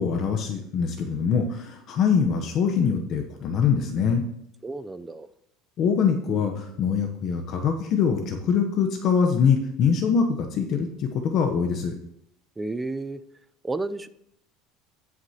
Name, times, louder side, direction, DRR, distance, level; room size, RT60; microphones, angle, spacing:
voice 1, 0.0-4.2 5.8-11.9, left 6 dB, 40° left, 4 dB, 0.8 m, -23 dB
voice 2, 4.6-5.3 12.6-13.2 13.6-14.1, right 2 dB, 10° right, 13 dB, 0.4 m, -31 dB
17.0 x 6.0 x 2.8 m, 0.74 s
cardioid pair, 155°, 0 cm